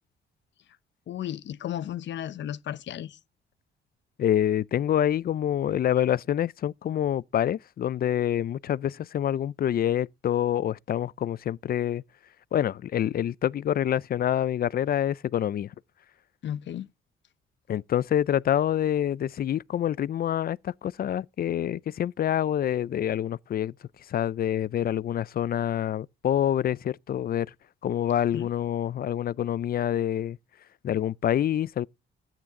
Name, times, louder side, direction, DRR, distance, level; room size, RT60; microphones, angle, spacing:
voice 1, 1.1-3.2 16.4-16.9 28.3-28.5, left 11 dB, 65° left, 0.9 m, -34 dB
voice 2, 4.2-12.0 12.5-15.7 17.7-23.7 24.1-27.5 27.8-30.4 30.8-31.9, left 10 dB, 50° left, 0.5 m, -26 dB
13.5 x 9.0 x 3.7 m
cardioid pair, 90°, 20 cm